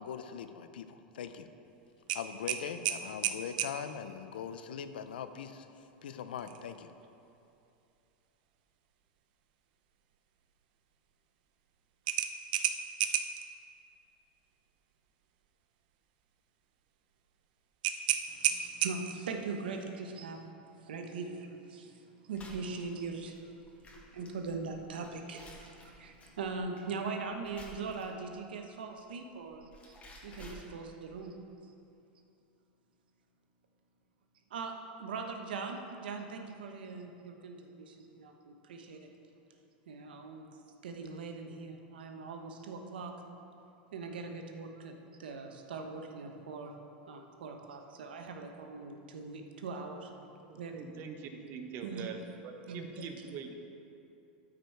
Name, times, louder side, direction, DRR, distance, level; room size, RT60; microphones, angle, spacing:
voice 1, 0.0-1.5 2.1-5.7 6.0-6.9, left 7 dB, 90° left, 10 dB, 0.6 m, -41 dB
sound 1, 2.1-3.8 6.4-6.6 7.0-7.1 12.1-13.4 17.8-19.3, right 11 dB, 70° right, 0.6 m, -32 dB
voice 2, 18.3-20.4 20.7-29.9 30.2-31.3 34.5-39.1 39.9-40.5 40.8-43.1 43.9-46.8 47.1-50.1 50.5-50.8 51.8-52.2 52.7-53.3, right 4 dB, 90° right, 4 dB, 1.0 m, -41 dB
sound 2, 22.3-28.3 29.3-31.1, equal, 25° left, 1.9 m, -53 dB
voice 3, 50.4-53.7, right 6 dB, 45° right, 5 dB, 1.0 m, -44 dB
12.5 x 5.2 x 4.6 m, 2.7 s
supercardioid pair, 120°, 5 cm